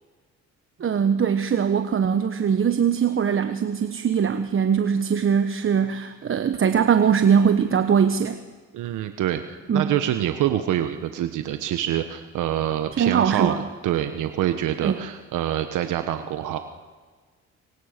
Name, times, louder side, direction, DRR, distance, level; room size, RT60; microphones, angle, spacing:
voice 1, 0.8-8.4 9.7-9.9 12.9-13.6 14.8-15.0, right 7 dB, 45° right, 9 dB, 1.2 m, -21 dB
voice 2, 8.7-16.6, right 11 dB, 85° right, 8 dB, 1.3 m, -26 dB
27.0 x 25.0 x 6.7 m, 1.5 s
cardioid pair, 90°, 30 cm